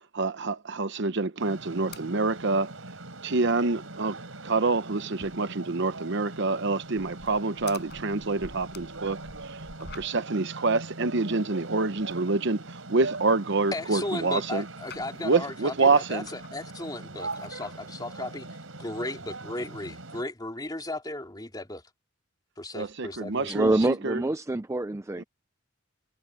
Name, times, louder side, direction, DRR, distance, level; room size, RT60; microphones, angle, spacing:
voice 1, 0.0-2.7 3.2-9.6 9.9-14.7 15.2-16.3 22.7-24.2 25.2-25.3, right 3 dB, 60° right, 1.0 m, -27 dB
sound 1, 1.4-20.2, right 2 dB, 85° right, 4.4 m, -41 dB
sound 2, 1.8-2.1 2.4-2.5 2.8-2.9 3.3-3.4 3.7-4.3 4.6-10.4 10.8-12.2 12.7-14.1 14.4-15.4 15.8-16.8 17.2-17.9, left 4 dB, 55° left, 5.2 m, -50 dB
voice 2, 13.7-18.5 18.8-21.8 22.6-23.8, left 2 dB, 20° left, 3.0 m, -36 dB
voice 3, 23.5-25.2, right 2 dB, 15° right, 0.4 m, -26 dB
head